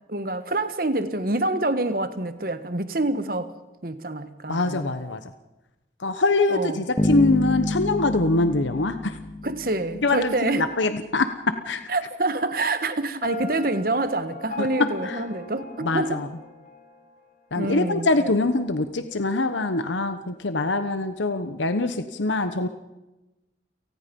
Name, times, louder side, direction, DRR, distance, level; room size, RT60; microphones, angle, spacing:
voice 1, 0.1-3.5 3.8-4.9 6.5-6.9 9.4-10.7 11.9-16.2 17.5-18.3, right 2 dB, 50° right, 1.5 m, -26 dB
voice 2, 4.5-5.2 6.0-9.2 10.0-11.8 14.6-14.7 15.0-15.2 15.8-16.3 17.5-22.7, left 2 dB, 90° left, 1.1 m, -24 dB
sound 1, 7.0-10.0, left 1 dB, 25° left, 1.8 m, -27 dB
Piano, 13.2-17.1, left 2 dB, 45° left, 2.8 m, -38 dB
30.0 x 19.0 x 5.4 m
head